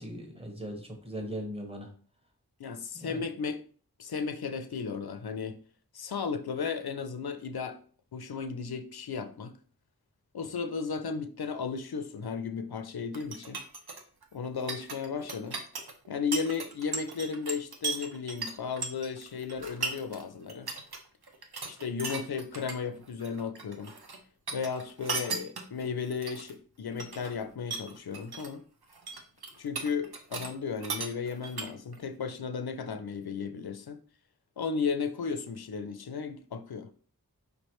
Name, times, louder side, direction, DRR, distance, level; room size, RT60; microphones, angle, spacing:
voice 1, 0.0-1.9 2.9-3.3, equal, 15° right, 1.2 m, -39 dB
voice 2, 2.6-3.6 4.0-5.6 5.9-7.8 8.1-9.5 10.3-13.6 14.3-15.6 16.1-20.7 21.7-23.9 24.5-28.6 29.6-34.0 34.6-36.9, left 5 dB, 80° left, 0.5 m, -34 dB
sound 1, 13.1-20.2 20.5-21.0 21.2-22.7 23.0-24.2 24.5-26.5 26.9-27.4 27.7-28.5 28.8-30.5 30.8-32.0, right 4 dB, 85° right, 0.7 m, -37 dB
5.0 x 3.2 x 3.0 m
wide cardioid pair, 45°, 37 cm